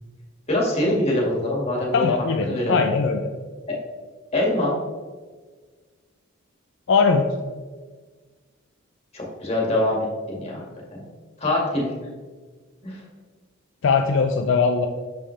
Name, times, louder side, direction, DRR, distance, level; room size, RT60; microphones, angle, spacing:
voice 1, 0.5-2.1 2.4-2.8 4.3-4.7 9.1-10.6 10.9-11.0 11.4-11.9 12.8-13.0, left 1 dB, 30° left, -3 dB, 1.9 m, -24 dB
voice 2, 1.9-3.2 6.9-7.3 13.8-14.9, left 5 dB, 65° left, 4 dB, 0.4 m, -20 dB
6.9 x 5.5 x 3.2 m, 1.4 s
head